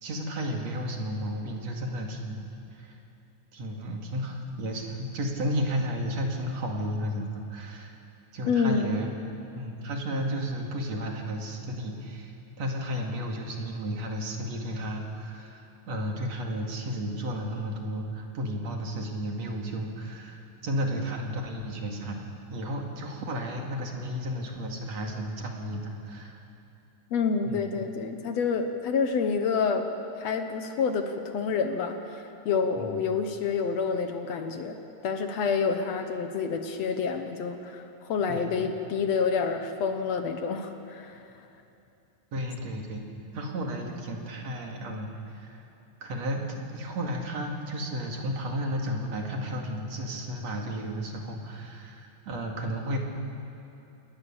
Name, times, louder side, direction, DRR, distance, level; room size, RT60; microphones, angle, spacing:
voice 1, 0.0-2.4 2.7-3.0 3.5-8.0 8.3-9.1 9.6-26.4 27.5-27.6 32.8-33.0 38.3-38.6 42.3-43.0 43.3-45.6 46.0-53.0, equal, 60° right, 1 dB, 3.3 m, -33 dB
voice 2, 8.5-9.0 27.1-29.8 30.2-34.8 35.0-41.2, left 5 dB, 65° left, 6 dB, 2.1 m, -28 dB
27.5 x 19.5 x 7.2 m, 2.8 s
omnidirectional pair, 3.5 m